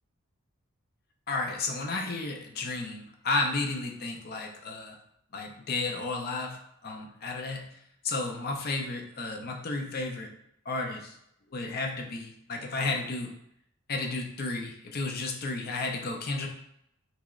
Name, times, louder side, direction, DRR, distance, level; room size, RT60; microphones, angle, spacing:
voice 1, 1.3-5.0 5.3-7.8 8.0-10.3 10.7-11.2 11.5-13.3 13.9-16.5, left 3 dB, 45° left, 2 dB, 0.5 m, -32 dB
2.9 x 2.1 x 3.5 m, 0.75 s
head